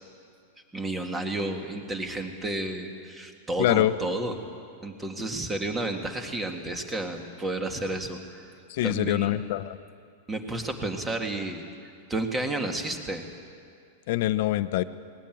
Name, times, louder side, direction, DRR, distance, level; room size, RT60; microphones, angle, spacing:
voice 1, 0.7-4.3 4.8-8.5 8.8-9.3 10.3-11.7 12.1-13.2, right 2 dB, 10° right, 4 dB, 2.0 m, -31 dB
voice 2, 3.6-4.0 8.7-9.8 14.1-14.8, left 14 dB, 55° left, 13 dB, 0.9 m, -24 dB
20.0 x 19.5 x 9.2 m, 2.3 s
supercardioid pair, 150°, 0 cm